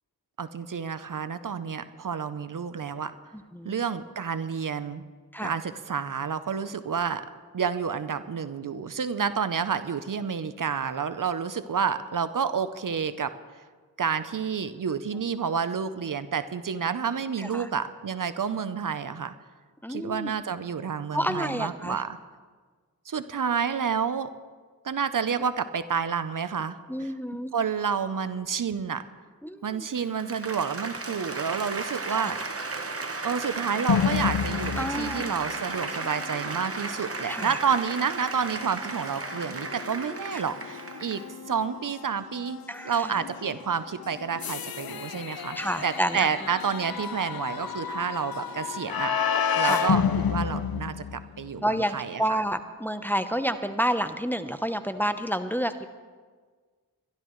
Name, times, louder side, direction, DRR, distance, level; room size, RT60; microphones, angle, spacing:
voice 1, 0.4-3.1 3.6-5.0 5.4-7.2 7.5-13.3 14.0-19.3 19.9-22.2 23.1-24.3 24.8-27.1 27.5-29.0 29.6-32.4 33.2-49.1 49.5-52.4, right 6 dB, 60° right, 12 dB, 0.7 m, -29 dB
voice 2, 19.8-20.3 21.1-22.0 26.9-27.5 29.4-29.9 32.1-32.3 34.8-35.3 37.2-37.6 40.3-40.4 42.7-43.2 45.6-46.3 49.6-49.9 51.6-55.9, equal, 5° left, 9 dB, 0.7 m, -29 dB
Applause, 29.8-41.4, right 3 dB, 40° right, 1.1 m, -35 dB
sound 1, 33.9-51.6, left 7 dB, 75° left, 0.7 m, -32 dB
24.0 x 12.0 x 3.1 m, 1.5 s
cardioid pair, 40°, 36 cm